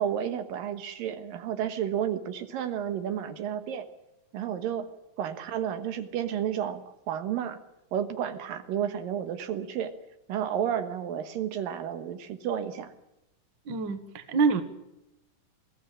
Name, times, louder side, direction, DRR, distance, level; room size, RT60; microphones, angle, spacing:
voice 1, 0.0-3.9 4.3-4.9 5.2-7.6 7.9-9.9 10.3-12.9, right 9 dB, 90° right, 9 dB, 3.1 m, -31 dB
voice 2, 13.7-14.6, right 5 dB, 50° right, 10 dB, 1.5 m, -26 dB
21.5 x 15.0 x 8.8 m, 0.90 s
omnidirectional pair, 3.9 m